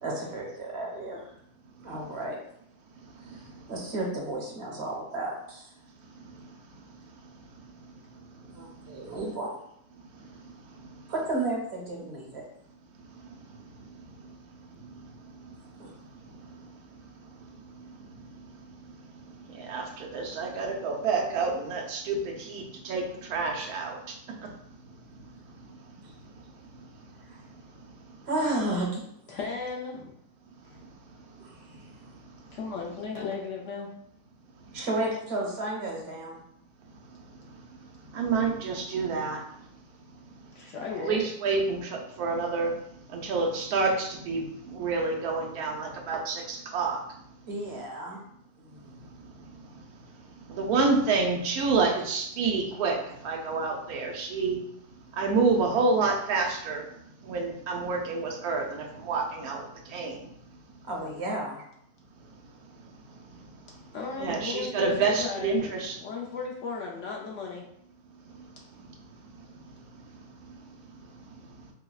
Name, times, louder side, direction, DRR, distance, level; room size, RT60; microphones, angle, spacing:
voice 1, 0.0-1.3 1.8-2.4 3.7-5.7 8.5-9.6 11.1-12.4 15.8-15.9 27.3-27.4 28.3-29.0 31.4-31.6 34.7-36.4 47.5-48.2 48.6-48.9 60.8-61.6, right 2 dB, 55° right, -1 dB, 0.8 m, -32 dB
voice 2, 19.5-24.1 24.4-24.5 38.1-39.4 41.0-42.7 43.1-47.0 50.5-54.6 55.1-56.8 57.2-60.2 64.1-66.0, right 4 dB, 90° right, 1 dB, 1.1 m, -28 dB
voice 3, 29.3-30.1 32.5-33.9 40.5-41.2 63.9-65.7 66.0-67.7, left 4 dB, 65° left, -1 dB, 0.8 m, -35 dB
4.7 x 2.1 x 2.3 m, 0.72 s
omnidirectional pair, 1.6 m